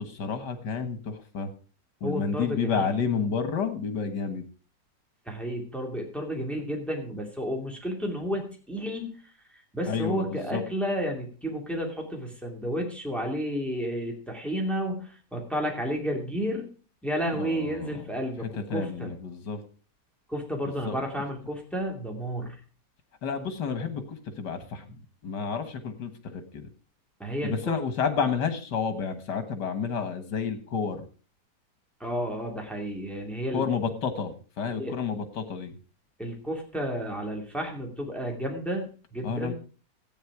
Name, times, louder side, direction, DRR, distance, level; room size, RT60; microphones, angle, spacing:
voice 1, 0.0-1.5 2.0-4.5 9.9-10.6 17.3-18.1 18.4-19.6 20.6-21.0 23.2-26.7 27.4-31.1 33.5-35.8 39.2-39.5, left 6 dB, 85° left, 9 dB, 2.1 m, -30 dB
voice 2, 2.0-2.9 5.3-9.1 9.7-16.7 17.0-19.1 20.3-22.6 27.2-27.7 32.0-33.6 34.7-34.9 36.2-39.5, equal, ahead, 1 dB, 2.5 m, -31 dB
14.0 x 9.0 x 4.7 m, 0.39 s
omnidirectional pair, 1.8 m